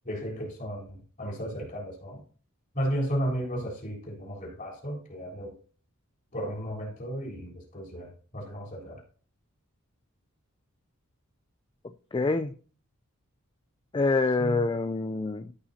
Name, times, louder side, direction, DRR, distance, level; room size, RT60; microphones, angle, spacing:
voice 1, 0.0-2.2 2.7-5.6 6.3-9.0 14.4-14.6, equal, 40° left, 3.7 m, -34 dB
voice 2, 12.1-12.5 13.9-15.5, left 3 dB, 20° left, 0.4 m, -26 dB
14.0 x 5.7 x 2.8 m
head